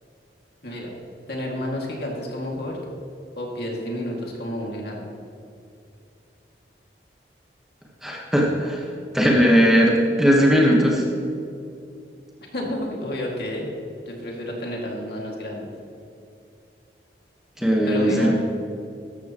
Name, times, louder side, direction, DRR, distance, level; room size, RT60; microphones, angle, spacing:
voice 1, 1.3-2.8 3.4-5.0 12.5-13.7 14.0-15.7 17.8-18.4, left 1 dB, 60° left, -1 dB, 2.3 m, -30 dB
voice 2, 8.0-8.8 9.1-11.0 17.6-18.4, equal, 5° right, -3 dB, 1.3 m, -18 dB
14.0 x 13.0 x 3.0 m, 2.5 s
head